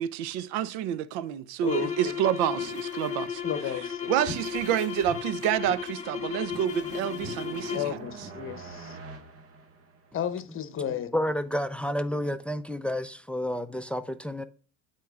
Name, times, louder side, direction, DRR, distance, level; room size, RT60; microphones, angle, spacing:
voice 1, 0.0-3.4 4.1-8.0, right 11 dB, 70° right, 0.7 m, -28 dB
voice 2, 1.6-2.1 3.4-4.1 7.7-9.0 10.1-11.1, left 9 dB, 35° left, 1.0 m, -33 dB
sound 1, 1.6-8.0, left 7 dB, 20° left, 2.1 m, -34 dB
sound 2, 2.6-3.2 3.5-3.6 4.2-6.0 6.5-8.3, equal, 20° right, 2.3 m, -44 dB
sound 3, 5.5-10.4, right 3 dB, 40° right, 1.6 m, -46 dB
voice 3, 11.1-14.4, equal, 5° left, 0.5 m, -30 dB
13.0 x 4.5 x 2.4 m
supercardioid pair, 100°, 34 cm